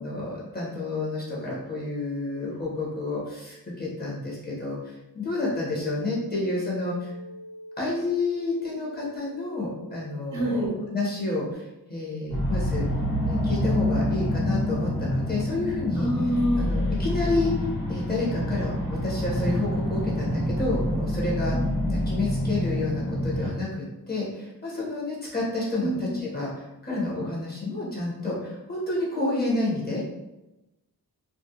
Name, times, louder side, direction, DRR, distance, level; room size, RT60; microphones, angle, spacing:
voice 1, 0.0-7.1 7.8-12.9 13.2-16.1 16.6-17.5 17.9-21.6 21.9-30.0, left 2 dB, 25° left, -5 dB, 0.8 m, -30 dB
sound 1, 5.8-11.5, right 1 dB, 55° left, 0.7 m, -44 dB
voice 2, 10.3-10.7 16.0-16.7 21.5-22.0 25.8-26.2, equal, 50° right, -2 dB, 0.6 m, -27 dB
sound 2, 12.3-23.5, left 1 dB, 75° left, 1.3 m, -27 dB
2.4 x 2.0 x 2.7 m, 0.97 s
wide cardioid pair, 95°, 36 cm